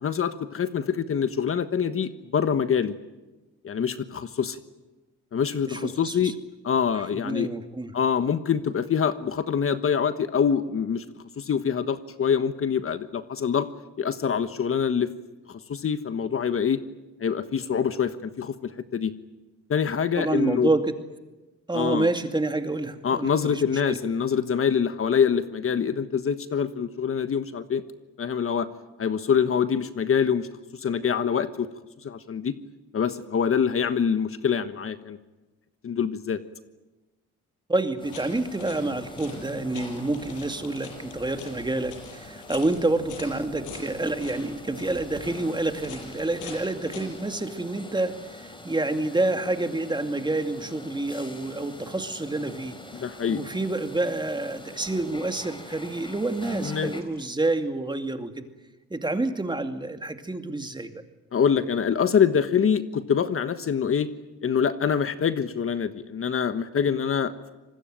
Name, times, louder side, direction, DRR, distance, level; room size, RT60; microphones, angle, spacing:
voice 1, 0.0-3.0 3.6-4.6 5.3-6.3 6.6-7.5 7.9-11.0 11.4-13.7 14.0-15.1 15.5-16.8 17.2-19.1 19.7-20.7 21.7-22.1 23.0-27.8 28.2-28.7 29.0-30.5 30.8-31.7 32.0-32.5 32.9-35.2 35.8-36.4 52.9-53.4 56.6-56.9 61.3-64.1 64.4-67.5, left 7 dB, 45° left, 11 dB, 1.4 m, -25 dB
voice 2, 5.7-6.3 6.9-7.9 20.1-20.9 21.7-24.0 37.7-52.8 53.3-58.4 58.9-60.9, right 2 dB, 15° right, 7 dB, 2.4 m, -28 dB
sound 1, 37.9-47.2, left 5 dB, 80° left, 6.9 m, -45 dB
sound 2, 38.0-57.0, left 1 dB, 15° left, 4.6 m, -44 dB
25.5 x 20.5 x 9.2 m, 1.1 s
cardioid pair, 90°, 30 cm